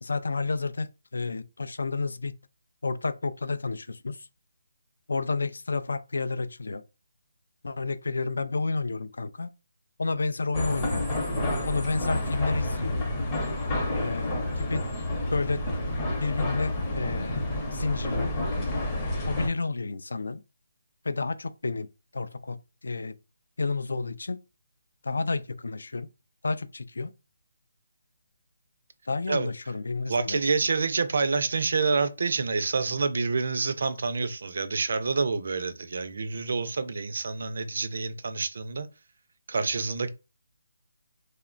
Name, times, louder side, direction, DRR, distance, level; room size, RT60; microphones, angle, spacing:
voice 1, 0.0-2.4 2.8-4.3 5.1-6.8 7.6-9.5 10.0-11.1 11.7-13.0 14.0-14.3 14.6-14.8 15.3-15.7 16.2-17.4 17.7-18.3 19.3-20.4 21.0-21.9 22.1-23.1 23.6-24.4 25.0-26.1 26.4-27.1 29.1-30.4, left 3 dB, 75° left, 0.3 m, -30 dB
sound 1, 10.5-19.5, left 1 dB, 15° left, 0.6 m, -29 dB
voice 2, 30.1-38.9 39.5-40.1, right 4 dB, 55° right, 0.4 m, -27 dB
2.9 x 2.1 x 2.5 m
hypercardioid pair, 170°, 0 cm